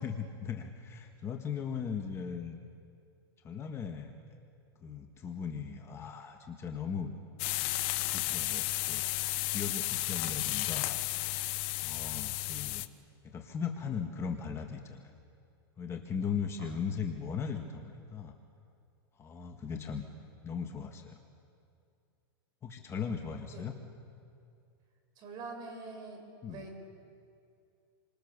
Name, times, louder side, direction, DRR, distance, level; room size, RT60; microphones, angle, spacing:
voice 1, 0.0-2.6 3.4-4.1 4.8-7.1 8.1-11.0 11.8-12.8 13.2-15.1 15.8-18.3 19.2-20.1 20.4-21.2 22.6-23.7 26.4-26.6, left 6 dB, 20° left, 4 dB, 1.7 m, -38 dB
sound 1, 7.4-12.9, left 19 dB, 45° left, 1.0 m, -33 dB
voice 2, 25.2-26.9, right 3 dB, 35° right, 4 dB, 5.9 m, -45 dB
28.0 x 25.5 x 6.8 m, 2.4 s
hypercardioid pair, 135°, 13 cm